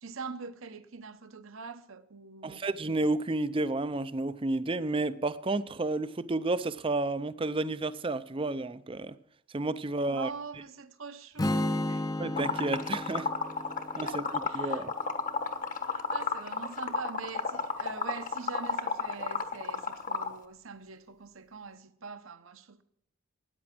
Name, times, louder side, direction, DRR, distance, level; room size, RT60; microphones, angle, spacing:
voice 1, 0.0-2.7 10.1-12.0 13.8-14.9 15.9-22.8, right 5 dB, 75° right, 1.0 m, -43 dB
voice 2, 2.4-9.1 9.5-10.3 12.2-13.3 14.0-14.2 14.5-14.9, right 2 dB, 25° right, 0.5 m, -31 dB
Strum, 11.4-15.5, left 1 dB, 20° left, 0.6 m, -34 dB
Liquid, 12.4-20.3, left 5 dB, 40° left, 1.1 m, -32 dB
13.5 x 9.6 x 6.0 m
head